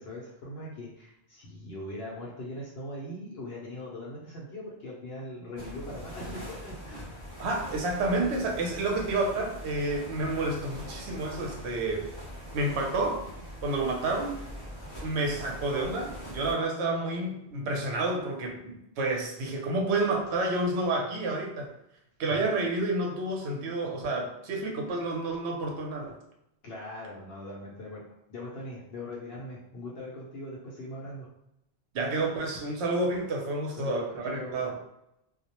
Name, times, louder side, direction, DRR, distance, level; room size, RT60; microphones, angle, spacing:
voice 1, 0.0-7.1 22.3-22.5 26.6-28.0 28.3-31.3 33.7-34.6, left 1 dB, 70° left, -4 dB, 0.8 m, -40 dB
sound 1, 5.6-16.5, equal, 25° left, 0.8 m, -42 dB
voice 2, 7.4-12.1 12.5-13.2 13.6-14.4 15.0-21.7 22.2-26.2 31.9-34.8, right 2 dB, 75° right, 1 dB, 0.9 m, -29 dB
2.2 x 2.0 x 2.8 m, 0.83 s
omnidirectional pair, 1.1 m